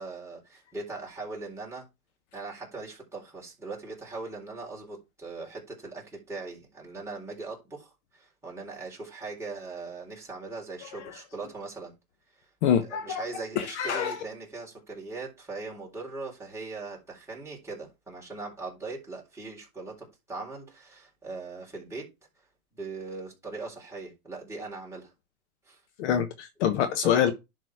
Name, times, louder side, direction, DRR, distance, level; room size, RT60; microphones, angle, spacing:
voice 1, 0.0-1.9 2.3-11.9 12.3-12.5 12.8-22.1 22.7-25.1 25.6-25.8 27.0-27.3, right 3 dB, 5° right, 3.9 m, -40 dB
voice 2, 12.6-13.2 13.6-14.1 26.0-27.3, left 9 dB, 50° left, 1.1 m, -25 dB
11.0 x 4.2 x 4.7 m
hypercardioid pair, 135°, 45 cm